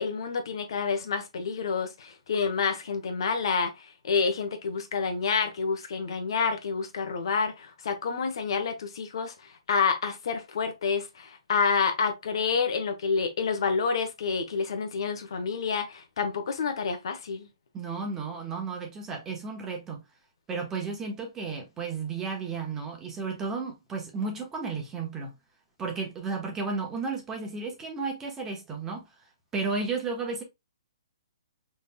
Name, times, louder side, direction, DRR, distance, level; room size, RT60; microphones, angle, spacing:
voice 1, 0.0-9.3 9.7-17.5, left 5 dB, 60° left, 1.1 m, -28 dB
voice 2, 17.7-20.0 20.5-25.3 25.8-29.1 29.5-30.4, right 4 dB, 15° right, 1.2 m, -33 dB
5.2 x 3.4 x 2.3 m
hypercardioid pair, 150°, 3 cm